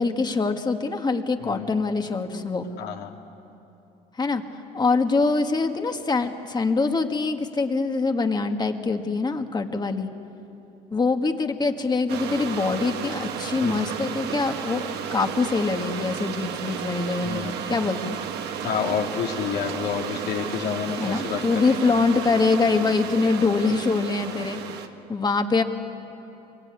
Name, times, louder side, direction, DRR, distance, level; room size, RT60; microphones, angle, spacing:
voice 1, 0.0-2.7 4.2-4.4 4.7-10.1 10.9-18.2 21.0-24.6 25.1-25.6, left 4 dB, 25° left, 6 dB, 1.7 m, -24 dB
voice 2, 2.8-3.1 13.6-13.8 17.2-17.5 18.6-21.4, left 7 dB, 80° left, 1 dB, 2.6 m, -29 dB
sound 1, 12.1-24.9, right 8 dB, 80° right, 1.6 m, -33 dB
25.0 x 23.5 x 9.6 m, 2.9 s
cardioid pair, 110°, 17 cm